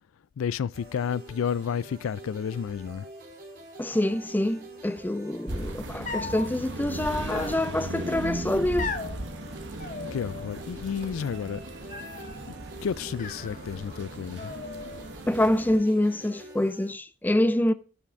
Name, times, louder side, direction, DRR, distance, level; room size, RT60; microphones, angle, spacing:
voice 1, 0.4-3.1 10.1-11.6 12.8-14.5, left 7 dB, 80° left, 0.3 m, -31 dB
sound 1, 0.7-16.9, right 1 dB, 45° right, 4.0 m, -46 dB
voice 2, 3.8-8.9 15.3-17.7, left 1 dB, 10° left, 0.3 m, -26 dB
sound 2, 5.5-15.8, right 1 dB, 60° right, 1.3 m, -37 dB
sound 3, 6.0-6.5 7.3-8.0 8.8-9.2 9.8-10.6 10.9-11.4 11.9-12.4 13.1-14.0 14.4-15.1, left 4 dB, 35° left, 1.0 m, -38 dB
8.6 x 7.6 x 4.8 m
head